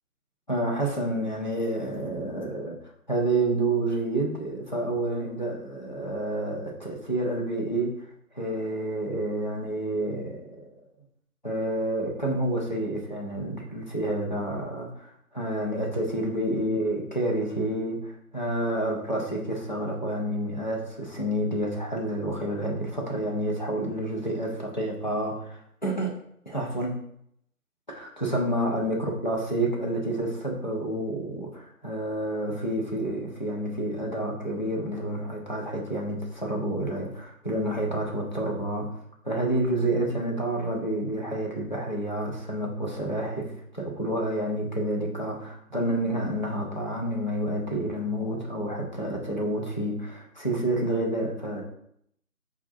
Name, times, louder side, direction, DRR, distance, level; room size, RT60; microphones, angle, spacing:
voice 1, 0.5-2.8 3.1-7.9 8.3-10.6 11.4-26.1 26.5-27.0 27.9-38.9 39.2-51.6, right 1 dB, 30° left, -3 dB, 0.8 m, -29 dB
5.1 x 2.4 x 4.2 m, 0.71 s
figure-of-eight pair, 165°, 44 cm